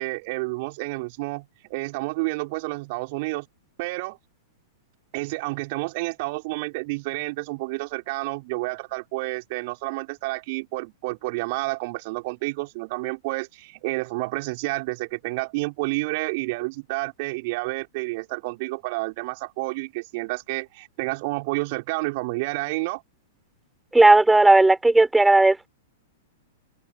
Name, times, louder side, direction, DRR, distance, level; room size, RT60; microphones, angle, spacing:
voice 1, 0.0-3.5 3.8-4.2 5.1-23.0, right 25 dB, 45° right, 5.4 m, -30 dB
voice 2, 23.9-25.7, right 2 dB, 5° right, 4.5 m, -15 dB
figure-of-eight pair, 100°, 0 cm